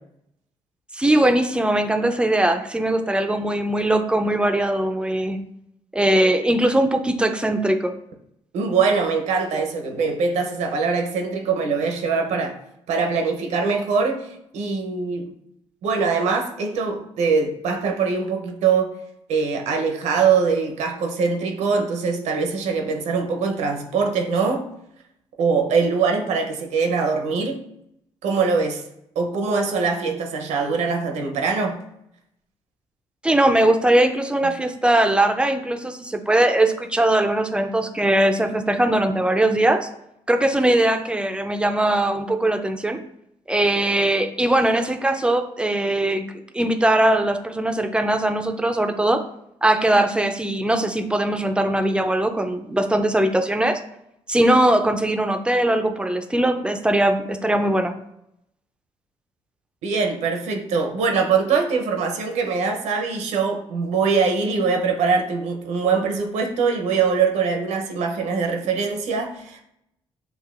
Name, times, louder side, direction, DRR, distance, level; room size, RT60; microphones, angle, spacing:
voice 1, 0.9-5.4 5.9-7.9 33.2-39.9 40.3-43.0 43.5-46.2 46.5-49.2 49.6-53.8 54.3-57.9, right 1 dB, 10° right, 7 dB, 0.5 m, -20 dB
voice 2, 8.5-12.6 12.9-15.3 15.8-18.9 19.3-24.6 25.4-27.6 28.2-28.8 29.2-31.8 34.4-34.5 59.8-69.6, right 5 dB, 80° right, 3 dB, 0.7 m, -22 dB
6.4 x 2.5 x 2.5 m, 0.78 s
cardioid pair, 75°, 12 cm